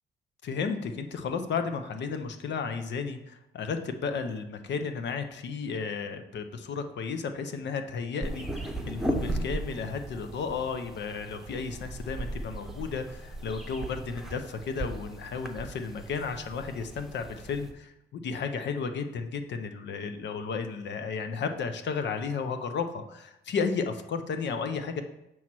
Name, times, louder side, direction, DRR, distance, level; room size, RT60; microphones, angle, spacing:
voice 1, 0.4-17.9 18.2-25.0, left 5 dB, 65° left, 8 dB, 0.6 m, -33 dB
sound 1, 8.2-17.7, right 1 dB, ahead, 0.8 m, -37 dB
7.0 x 3.1 x 6.0 m, 0.87 s
cardioid pair, 90°, 20 cm